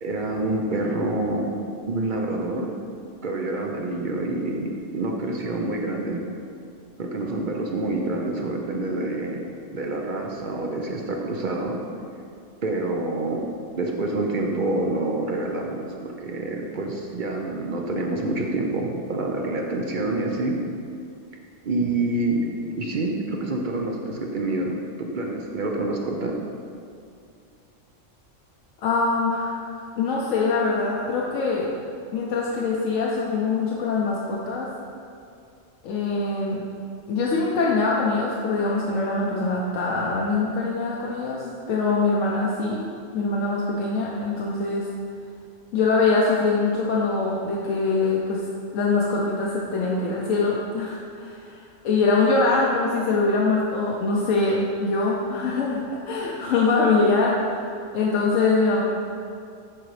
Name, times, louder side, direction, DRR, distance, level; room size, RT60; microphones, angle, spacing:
voice 1, 0.0-1.6 1.9-2.7 3.2-6.2 7.0-9.4 9.7-11.8 12.6-13.4 13.8-20.6 21.6-22.5 22.8-26.3, right 2 dB, 50° right, 0 dB, 0.6 m, -27 dB
voice 2, 28.8-29.7 30.0-31.7 32.1-34.7 35.8-36.6 37.1-42.9 43.1-44.9 45.7-48.5 48.7-57.7 57.9-58.8, left 3 dB, 85° left, -4 dB, 1.1 m, -23 dB
10.0 x 3.9 x 3.2 m, 2.4 s
omnidirectional pair, 1.3 m